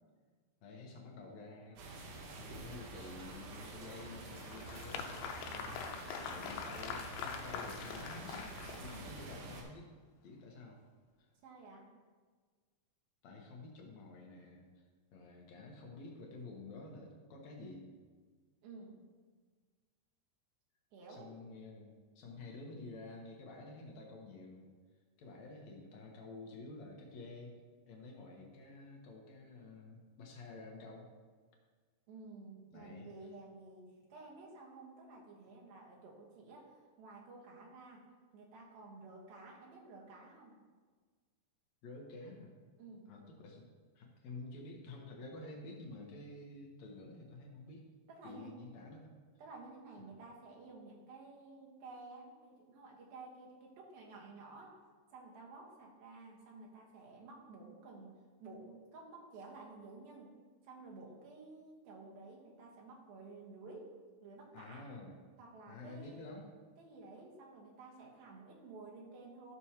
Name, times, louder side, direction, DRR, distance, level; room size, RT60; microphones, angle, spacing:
voice 1, 0.6-1.8 2.4-8.5 8.8-9.9 10.2-10.8 11.2-11.3 13.2-14.8 15.1-17.9 21.1-24.7 25.2-27.6 27.9-31.1 32.7-33.1 41.8-42.5 43.1-43.7 43.9-47.9 48.2-49.2 50.0-50.2 64.5-65.2 65.7-66.5, left 2 dB, 70° left, 0 dB, 1.7 m, -50 dB
sound 1, 1.8-9.6, right 2 dB, 90° right, 3.3 m, -48 dB
Applause, 3.9-9.3, left 7 dB, 85° left, 2.6 m, -44 dB
voice 2, 11.4-11.9 18.6-19.0 20.9-21.3 32.1-38.0 38.3-40.5 42.8-43.1 48.1-48.5 49.4-54.8 55.1-58.1 58.4-60.3 60.6-63.9 64.2-64.9 65.4-66.4 66.8-69.5, right 3 dB, 70° right, -2 dB, 3.0 m, -53 dB
14.0 x 6.2 x 2.9 m, 1.5 s
omnidirectional pair, 4.6 m